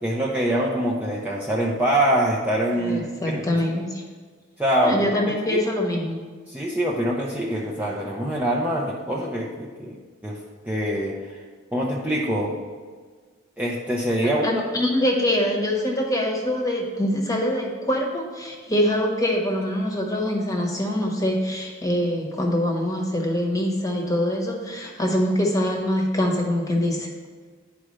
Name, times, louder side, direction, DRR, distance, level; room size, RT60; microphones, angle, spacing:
voice 1, 0.0-3.4 4.6-5.2 5.5-5.6 6.5-10.4 10.7-11.4 11.7-12.6 13.6-14.8, right 1 dB, 10° right, -4 dB, 0.6 m, -24 dB
voice 2, 2.8-4.0 4.8-6.2 14.4-27.1, left 1 dB, 15° left, 0 dB, 1.1 m, -24 dB
11.0 x 4.9 x 3.2 m, 1.5 s
head